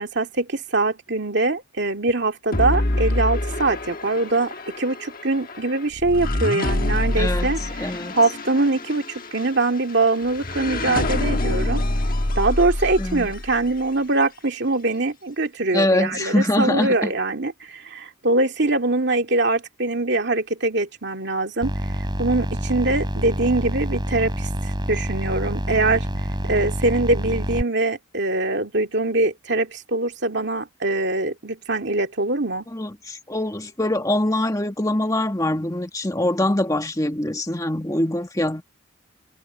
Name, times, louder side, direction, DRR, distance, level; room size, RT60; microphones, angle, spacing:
voice 1, 0.0-11.8 12.4-21.7 22.2-24.5 24.9-26.1 26.5-32.6, right 2 dB, 55° right, 2.4 m, -23 dB
sound 1, 2.5-13.8, left 1 dB, 45° left, 1.4 m, -26 dB
voice 2, 7.2-8.2 13.0-13.3 15.7-17.1 32.7-38.6, left 1 dB, 15° left, 1.8 m, -23 dB
sound 2, 21.6-27.6, equal, 20° right, 3.2 m, -27 dB
head